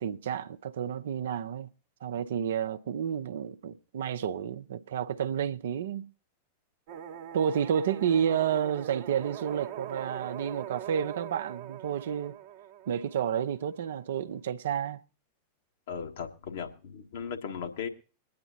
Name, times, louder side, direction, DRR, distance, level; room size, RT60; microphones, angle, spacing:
voice 1, 0.0-1.7 2.0-6.1 7.3-12.4 12.9-15.0, right 8 dB, 60° right, 0.7 m, -30 dB
sound 1, 6.9-13.8, right 10 dB, 45° right, 1.1 m, -42 dB
voice 2, 15.9-17.9, left 7 dB, 60° left, 1.6 m, -37 dB
23.0 x 9.6 x 2.8 m
figure-of-eight pair, 90°, 0 cm